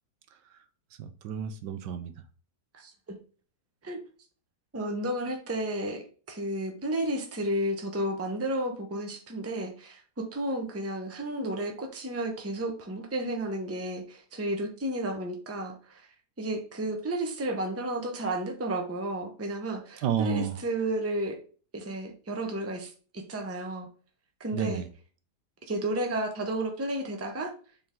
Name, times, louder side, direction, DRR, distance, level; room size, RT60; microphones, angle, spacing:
voice 1, 1.0-2.1 20.0-20.6 24.5-24.9, right 7 dB, 80° right, 1.3 m, -31 dB
voice 2, 2.7-3.2 3.8-4.0 4.7-16.1 16.4-21.4 21.7-23.9 24.4-24.8 25.7-27.5, right 1 dB, 10° right, 0.7 m, -32 dB
6.9 x 3.7 x 3.7 m
omnidirectional pair, 1.9 m